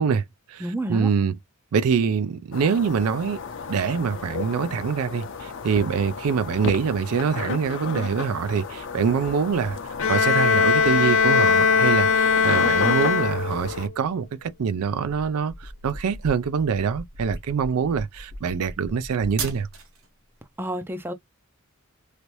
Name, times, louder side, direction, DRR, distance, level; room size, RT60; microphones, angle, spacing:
voice 1, 0.0-1.4 1.7-3.4 3.7-9.8 10.1-19.7, right 6 dB, 85° right, 0.4 m, -25 dB
voice 2, 0.6-1.1 20.6-21.1, right 1 dB, 10° right, 0.4 m, -29 dB
sound 1, 2.5-13.9, left 5 dB, 60° left, 0.6 m, -34 dB
Bowed string instrument, 10.0-13.8, left 5 dB, 85° left, 0.9 m, -20 dB
sound 2, 15.4-20.1, right 2 dB, 65° right, 0.9 m, -37 dB
3.3 x 2.6 x 3.0 m
head